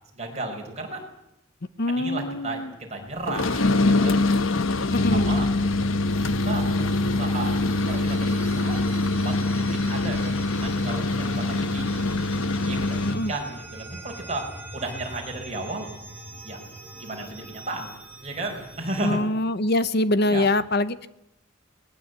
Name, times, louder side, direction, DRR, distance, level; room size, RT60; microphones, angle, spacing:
voice 1, 0.1-1.0 1.9-2.6 2.9-4.2 5.1-5.5 6.2-11.9 12.6-15.9 16.4-16.6 16.9-17.9 18.2-19.2 20.2-20.5, right 2 dB, 35° right, 1 dB, 5.4 m, -34 dB
voice 2, 1.8-2.7 4.9-5.4 13.0-13.3 19.0-21.1, left 1 dB, 55° left, 15 dB, 1.0 m, -24 dB
sound 1, 3.3-13.3, left 2 dB, 85° left, 1.2 m, -24 dB
sound 2, 6.1-19.1, right 2 dB, 10° right, 6.9 m, -43 dB
21.5 x 20.5 x 8.3 m, 0.84 s
head